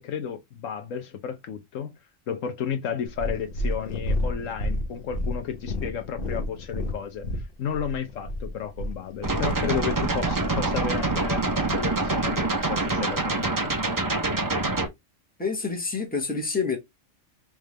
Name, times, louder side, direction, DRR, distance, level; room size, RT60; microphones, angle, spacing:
voice 1, 0.0-1.9 2.3-7.3 7.6-11.4 11.7-13.7, left 7 dB, 75° left, 1.1 m, -32 dB
Purr, 3.1-9.4 10.1-10.2, left 1 dB, 45° left, 1.0 m, -30 dB
sound 1, 9.2-14.9, right 2 dB, 25° right, 0.4 m, -25 dB
voice 2, 15.4-16.8, left 4 dB, 5° left, 1.1 m, -27 dB
3.6 x 3.4 x 3.2 m
omnidirectional pair, 1.4 m